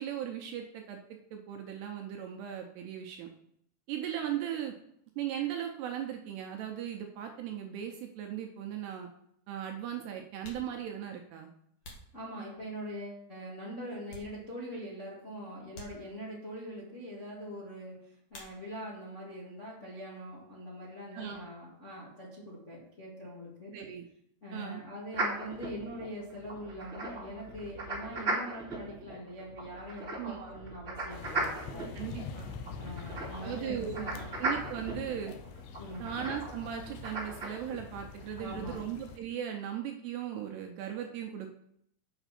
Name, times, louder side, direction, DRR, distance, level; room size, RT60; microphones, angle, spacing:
voice 1, 0.0-3.3 3.9-4.8 5.2-9.1 9.5-11.5 21.1-21.4 23.7-24.1 24.5-24.8 30.2-30.5 31.9-32.5 33.4-34.1 34.4-35.3 36.0-41.5, right 9 dB, 75° right, 3 dB, 2.5 m, -38 dB
sound 1, 10.4-12.9 13.4-14.8 15.1-15.2 15.7-16.5 18.3-19.1 19.3-20.0 20.3-22.5, equal, 60° left, 1.4 m, -54 dB
voice 2, 12.1-23.7 24.4-31.9 32.8-34.2 35.8-36.2 38.4-38.8, equal, 35° left, -6 dB, 1.2 m, -43 dB
sound 2, 25.1-37.5, right 2 dB, 20° right, 2.0 m, -38 dB
sound 3, 31.1-39.2, left 6 dB, 75° left, 2.7 m, -45 dB
8.0 x 6.5 x 5.9 m, 0.73 s
omnidirectional pair, 5.4 m